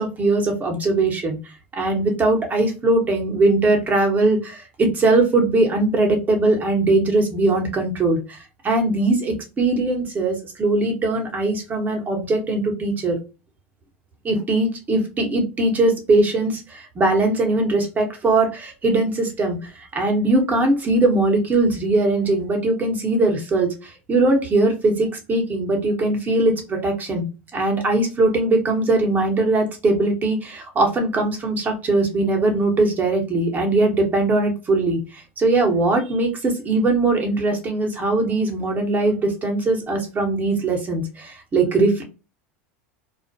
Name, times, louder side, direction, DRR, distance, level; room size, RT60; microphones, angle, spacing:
voice 1, 0.0-13.2 14.2-27.3 27.5-42.0, right 2 dB, 25° right, 3 dB, 0.9 m, -20 dB
2.4 x 2.1 x 2.6 m, 0.30 s
hypercardioid pair, 100°, 7 cm